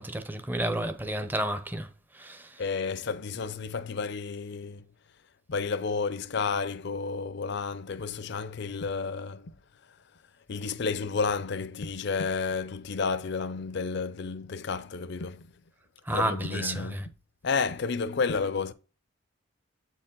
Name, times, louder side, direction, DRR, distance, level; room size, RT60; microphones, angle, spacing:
voice 1, 0.0-1.9 2.2-2.5 16.1-17.0, right 1 dB, 10° right, 0.6 m, -31 dB
voice 2, 2.6-4.9 5.5-9.5 10.5-15.5 16.1-17.0 17.4-18.7, left 4 dB, 55° left, 0.5 m, -31 dB
8.0 x 4.6 x 3.7 m
head